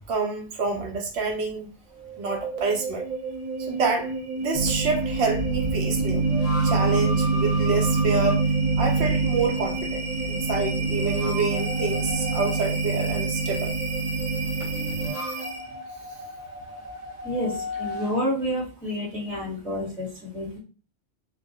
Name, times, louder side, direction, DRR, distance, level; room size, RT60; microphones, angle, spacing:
voice 1, 0.1-1.7 2.2-3.1 3.6-6.2 6.6-13.7, right 4 dB, 70° right, 2 dB, 0.8 m, -28 dB
sound 1, 1.9-15.8, right 2 dB, 55° right, 0.4 m, -32 dB
sound 2, 3.8-3.9 5.9-8.4 10.8-12.6 14.6-18.3, left 1 dB, 35° right, 0.9 m, -36 dB
sound 3, 4.5-15.1, right 4 dB, 30° left, 0.8 m, -26 dB
voice 2, 17.2-20.6, equal, ahead, -6 dB, 0.8 m, -29 dB
2.2 x 2.1 x 2.7 m, 0.37 s
omnidirectional pair, 1.2 m